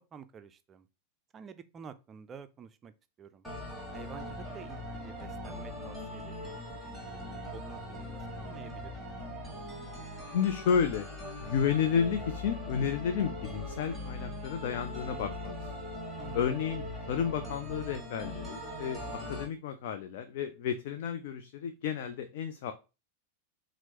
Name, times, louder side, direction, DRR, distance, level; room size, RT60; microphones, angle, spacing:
voice 1, 0.1-0.9 1.3-2.9 3.2-3.4 3.9-9.1 16.2-16.4, right 7 dB, 25° right, 0.3 m, -50 dB
sound 1, 3.4-19.4, left 1 dB, ahead, 1.3 m, -41 dB
voice 2, 10.3-11.1 11.4-15.7 16.3-22.7, left 7 dB, 50° left, 0.3 m, -31 dB
4.3 x 2.0 x 2.9 m
figure-of-eight pair, 90°, 0 cm